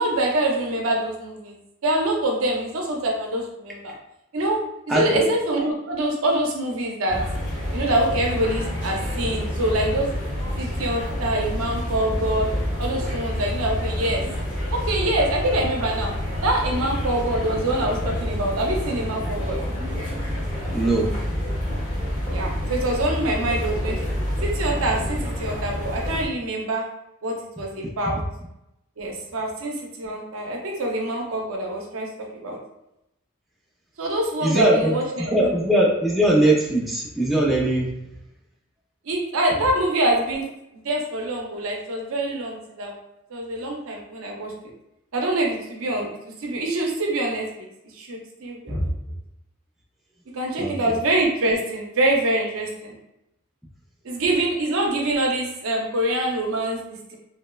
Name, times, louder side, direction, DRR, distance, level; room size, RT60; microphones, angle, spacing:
voice 1, 0.0-1.5 1.8-3.9 4.3-4.6 4.9-7.2 7.7-10.1 10.6-12.5 12.8-14.2 14.7-16.1 16.4-19.6 22.3-24.1 24.4-26.8 27.2-28.2 29.0-32.6 34.0-35.5 39.0-40.5 40.8-42.9 43.3-44.5 45.1-46.1 46.4-47.7 47.9-48.9 50.3-53.0 54.0-57.2, right 1 dB, 75° right, 0 dB, 0.6 m, -25 dB
voice 2, 4.9-5.2 20.7-21.1 34.4-37.9 48.7-48.9 50.6-51.0, right 1 dB, ahead, -4 dB, 0.3 m, -21 dB
sound 1, 7.1-26.3, equal, 40° left, 1.0 m, -28 dB
3.0 x 2.0 x 2.2 m, 0.86 s
head